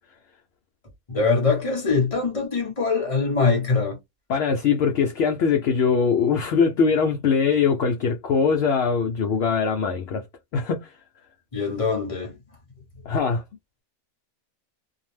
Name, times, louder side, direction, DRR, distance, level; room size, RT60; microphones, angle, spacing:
voice 1, 1.1-4.0 11.5-12.4, left 4 dB, 25° left, 1.0 m, -23 dB
voice 2, 4.3-10.2 10.5-10.9 13.1-13.4, left 5 dB, 65° left, 0.7 m, -22 dB
2.6 x 2.0 x 3.1 m
omnidirectional pair, 1.5 m